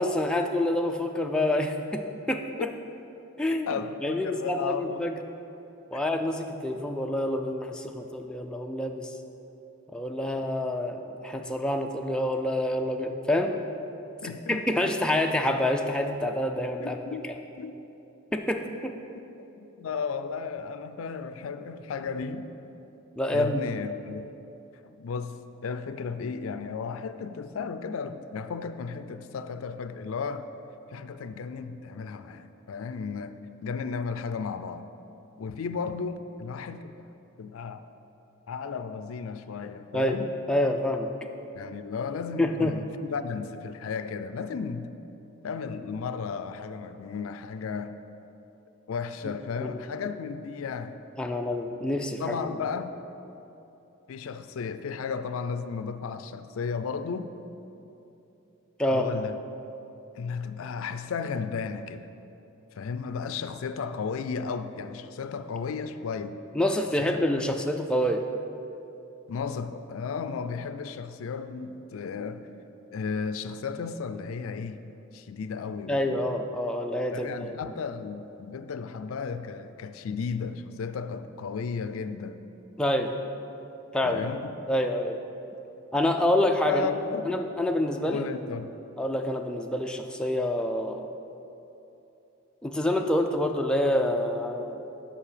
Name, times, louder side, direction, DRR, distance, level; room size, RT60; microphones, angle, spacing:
voice 1, 0.0-2.4 3.4-3.7 4.0-5.1 5.9-9.1 9.9-13.5 14.5-17.0 18.3-18.9 23.2-23.7 39.9-40.2 40.5-41.1 42.4-42.7 49.6-49.8 51.2-52.5 58.8-59.1 66.5-68.2 75.9-77.5 82.8-83.1 83.9-84.2 84.7-85.2 85.9-87.0 87.3-88.2 89.0-91.1 92.6-94.8, left 1 dB, 5° left, 3 dB, 0.3 m, -27 dB
voice 2, 3.7-5.1 14.2-14.6 16.8-17.8 18.5-18.6 19.8-22.5 23.3-24.2 24.8-30.5 30.9-34.9 35.4-36.9 37.4-37.9 38.5-40.3 41.5-44.9 45.4-48.0 48.9-50.9 52.2-52.9 54.1-57.3 58.9-59.4 60.2-62.1 62.8-66.4 67.0-67.6 69.3-72.5 72.9-74.8 75.1-76.2 77.1-82.4 84.0-84.6 86.6-87.3 88.1-88.7, left 5 dB, 75° left, 11 dB, 0.4 m, -34 dB
7.4 x 5.5 x 6.6 m, 2.9 s
head